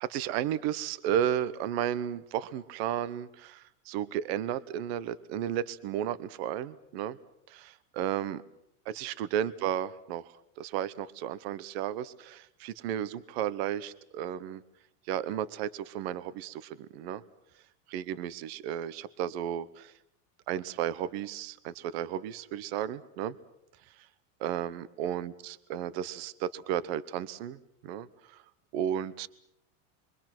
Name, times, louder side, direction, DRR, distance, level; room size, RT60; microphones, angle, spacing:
voice 1, 0.0-7.2 7.5-8.4 8.8-14.6 15.1-17.2 17.9-19.9 20.5-23.4 24.0-24.1 24.4-27.6 27.8-28.4 28.7-29.3, right 10 dB, 50° right, 16 dB, 1.1 m, -33 dB
28.5 x 24.0 x 6.1 m, 0.75 s
supercardioid pair, 175°, 41 cm